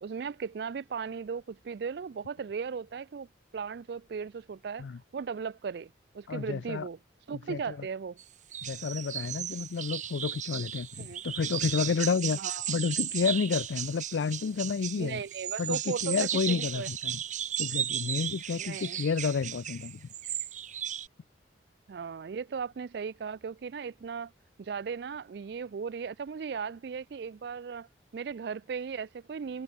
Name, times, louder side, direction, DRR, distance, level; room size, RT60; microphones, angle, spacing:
voice 1, 0.0-3.3 3.5-4.9 5.1-7.0 7.3-8.2 11.0-11.2 12.3-12.6 15.0-16.1 16.5-16.9 18.5-19.0 21.9-24.3 24.6-27.9 28.1-29.6, right 6 dB, 60° right, 0.4 m, -37 dB
voice 2, 6.3-6.9 7.3-7.8 8.6-12.4 12.7-15.2 15.6-17.2 17.6-20.0, left 5 dB, 80° left, 0.4 m, -30 dB
sound 1, 8.2-8.3 8.5-21.1, right 10 dB, 40° right, 1.2 m, -35 dB
head